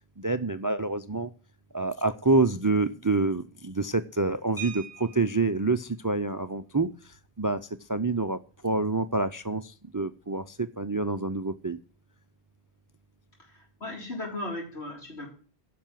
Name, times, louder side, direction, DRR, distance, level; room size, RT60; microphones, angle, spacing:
voice 1, 0.2-1.3 1.7-6.9 7.4-7.6 7.9-8.4 8.6-11.8, right 3 dB, 30° right, 12 dB, 0.4 m, -27 dB
sound 1, 4.6-5.6 7.1-7.2 7.6-7.7 8.1-8.4, right 6 dB, 45° left, 2.6 m, -42 dB
voice 2, 13.5-15.3, left 2 dB, 85° left, -1 dB, 4.3 m, -37 dB
10.0 x 6.1 x 7.4 m, 0.39 s
omnidirectional pair, 1.1 m